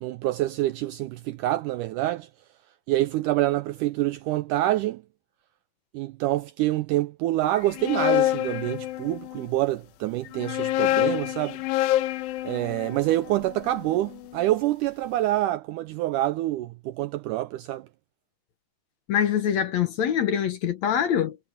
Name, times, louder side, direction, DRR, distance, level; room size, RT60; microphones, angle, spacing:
voice 1, 0.0-2.3 2.9-5.0 5.9-11.6 12.4-17.9, right 15 dB, 85° right, 1.8 m, -26 dB
sound 1, 7.6-9.5 10.3-14.4, left 14 dB, 80° left, 2.5 m, -27 dB
voice 2, 19.1-21.4, left 9 dB, 60° left, 2.1 m, -24 dB
omnidirectional pair, 4.2 m